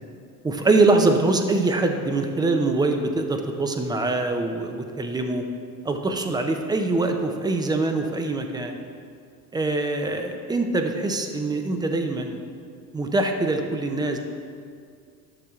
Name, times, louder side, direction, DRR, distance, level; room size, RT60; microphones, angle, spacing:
voice 1, 0.4-5.4 5.8-8.8 9.5-12.4 12.9-14.2, right 2 dB, 10° right, 5 dB, 0.4 m, -23 dB
11.5 x 6.6 x 2.4 m, 2.2 s
hypercardioid pair, 90°, 49 cm